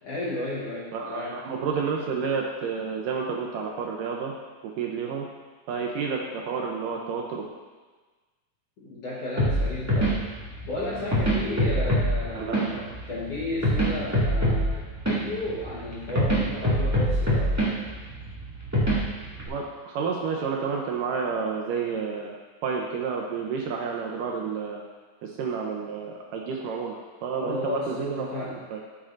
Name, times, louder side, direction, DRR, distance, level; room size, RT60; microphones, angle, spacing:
voice 1, 0.0-1.4 8.8-10.3 10.6-17.8 27.4-28.6, left 2 dB, 65° left, -7 dB, 1.5 m, -33 dB
voice 2, 0.9-4.3 4.6-5.3 5.7-7.5 12.3-12.8 19.5-22.4 22.6-24.8 25.2-28.3 28.7-28.8, right 5 dB, 75° right, 0 dB, 2.1 m, -30 dB
sound 1, 9.4-19.5, equal, 20° right, 0.4 m, -26 dB
13.0 x 7.3 x 2.6 m, 1.4 s
omnidirectional pair, 4.3 m